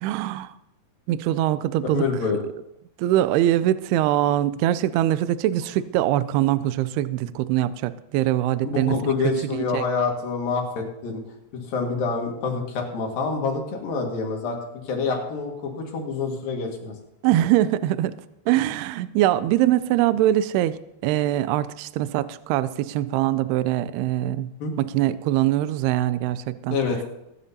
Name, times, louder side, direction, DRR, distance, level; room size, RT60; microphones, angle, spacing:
voice 1, 0.0-0.5 1.1-2.1 3.0-9.1 9.5-9.8 17.2-18.2 18.5-20.8 21.0-24.5 24.8-26.8, right 13 dB, 80° right, 15 dB, 2.4 m, -22 dB
voice 2, 1.9-2.4 8.6-11.2 11.7-14.6 14.8-16.9 24.6-24.7 26.7-27.0, left 4 dB, 60° left, 1 dB, 3.4 m, -26 dB
22.5 x 10.5 x 2.8 m, 0.86 s
omnidirectional pair, 4.9 m